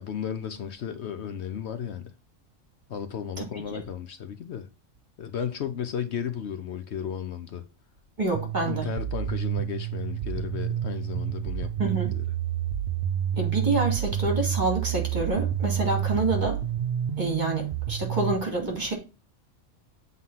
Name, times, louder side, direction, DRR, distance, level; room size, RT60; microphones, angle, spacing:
voice 1, 0.0-2.1 2.9-4.7 5.2-7.6 8.7-12.2 16.1-16.4, left 8 dB, 65° left, 0.9 m, -34 dB
voice 2, 8.2-8.9 11.8-12.1 13.4-16.6 17.2-18.9, right 2 dB, 35° right, 2.5 m, -27 dB
sound 1, 8.3-18.3, right 11 dB, 55° right, 0.8 m, -29 dB
7.6 x 3.9 x 5.6 m
omnidirectional pair, 1.3 m